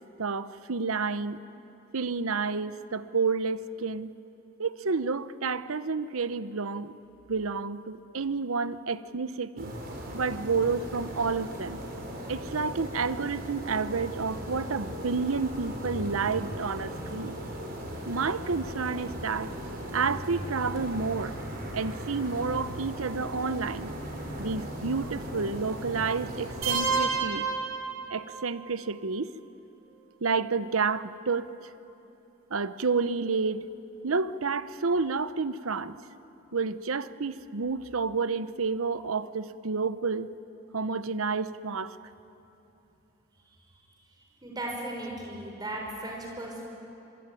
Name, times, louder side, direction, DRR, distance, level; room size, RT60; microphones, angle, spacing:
voice 1, 0.2-1.4 1.9-4.1 4.6-7.0 7.3-9.7 10.1-11.8 12.3-17.4 18.0-19.5 19.9-21.4 21.7-23.9 24.4-27.5 28.1-29.3 30.2-31.7 32.5-33.7 34.0-36.0 36.5-40.3 40.7-42.0, right 4 dB, 85° right, 14 dB, 0.9 m, -30 dB
sound 1, 9.6-27.0, equal, 45° right, 5.4 m, -38 dB
sound 2, 26.6-28.6, right 5 dB, 65° right, 3.2 m, -29 dB
voice 2, 44.4-46.7, right 1 dB, 20° right, 0 dB, 5.4 m, -36 dB
25.5 x 24.0 x 9.3 m, 2.9 s
head